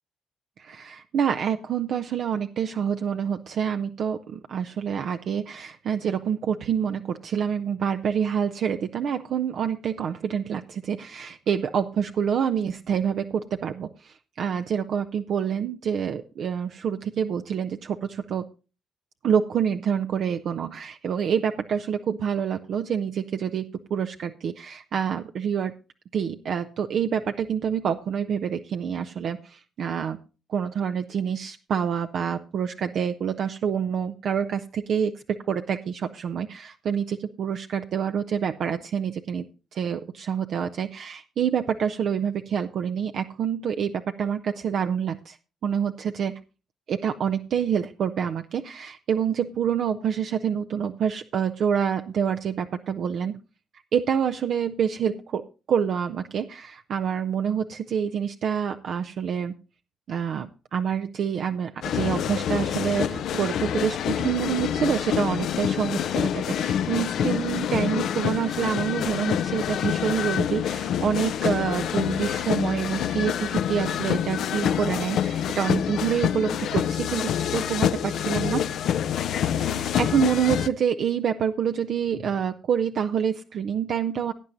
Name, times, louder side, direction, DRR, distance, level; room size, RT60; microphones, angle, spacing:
voice 1, 0.6-18.4 19.2-25.7 26.1-30.2 30.5-39.4 39.7-45.4 45.6-46.4 46.9-53.4 53.9-59.5 60.1-78.6 79.5-84.3, right 8 dB, 65° right, 7 dB, 0.6 m, -27 dB
sound 1, 61.8-80.7, left 9 dB, 70° left, 0.5 m, -27 dB
17.0 x 9.6 x 2.7 m, 0.32 s
hypercardioid pair, 45°, 0 cm